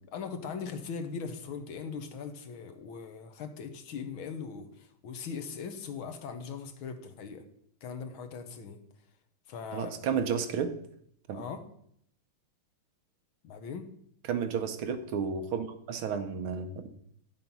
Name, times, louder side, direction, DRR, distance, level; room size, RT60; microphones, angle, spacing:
voice 1, 0.1-7.5 7.8-8.8 9.5-9.9 11.3-11.7 13.4-13.9, left 6 dB, 75° left, 8 dB, 1.9 m, -40 dB
voice 2, 9.7-10.7 11.3-11.4 14.3-16.9, right 6 dB, 75° right, 8 dB, 1.8 m, -32 dB
10.5 x 7.6 x 5.5 m, 0.69 s
omnidirectional pair, 2.3 m